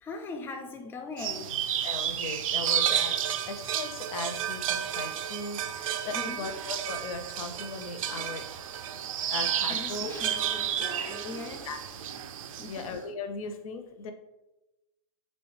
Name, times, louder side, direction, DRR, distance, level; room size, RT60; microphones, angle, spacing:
voice 1, 0.0-1.5 6.1-6.5 9.7-11.7 12.6-12.9, left 3 dB, 15° left, 5 dB, 0.3 m, -40 dB
sound 1, 1.2-12.9, right 10 dB, 75° right, 0.4 m, -31 dB
voice 2, 1.8-3.2 3.5-8.4 9.3-10.1 11.6-11.8 12.2-12.3 12.7-14.1, left 4 dB, 80° left, 7 dB, 0.5 m, -38 dB
3.1 x 3.1 x 3.0 m, 1.0 s
hypercardioid pair, 145°, 18 cm